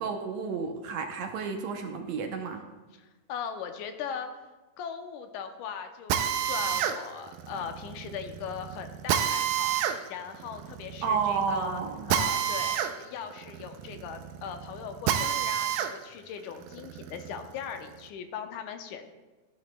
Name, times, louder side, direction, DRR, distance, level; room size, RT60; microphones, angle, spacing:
voice 1, 0.0-2.6 11.0-12.1, right 5 dB, 70° right, 4 dB, 1.9 m, -31 dB
voice 2, 2.9-4.4 4.8-11.8 12.1-19.1, left 7 dB, 85° left, 7 dB, 2.2 m, -39 dB
Drill, 6.1-15.9 16.4-18.0, right 9 dB, 90° right, 2.2 m, -30 dB
14.5 x 10.5 x 2.2 m, 1.2 s
omnidirectional pair, 3.6 m